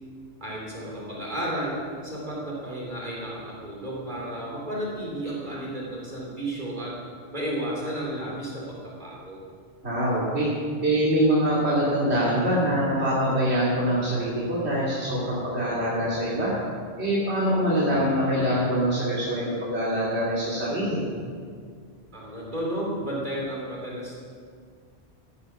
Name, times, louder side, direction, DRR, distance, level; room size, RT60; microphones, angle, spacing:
voice 1, 0.4-1.8 2.0-7.0 7.3-9.4 22.1-24.2, right 1 dB, 45° right, -4 dB, 3.4 m, -32 dB
voice 2, 9.8-10.5 10.8-16.6 17.0-21.0, equal, 80° right, -7 dB, 2.8 m, -24 dB
16.0 x 11.5 x 6.0 m, 2.1 s
omnidirectional pair, 1.1 m